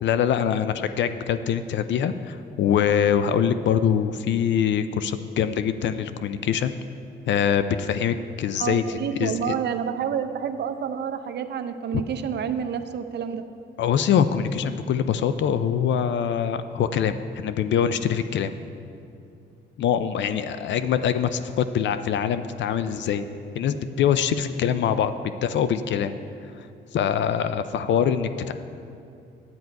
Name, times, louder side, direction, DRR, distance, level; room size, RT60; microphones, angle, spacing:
voice 1, 0.0-6.7 7.3-9.5 11.9-12.0 13.8-18.5 19.8-23.3 23.5-25.1 25.4-26.1 26.6-26.7 26.9-28.5, left 8 dB, 65° left, 11 dB, 0.5 m, -24 dB
voice 2, 8.6-13.4, right 8 dB, 60° right, 9 dB, 0.6 m, -29 dB
10.5 x 9.3 x 4.6 m, 2.6 s
cardioid pair, 90°, 20 cm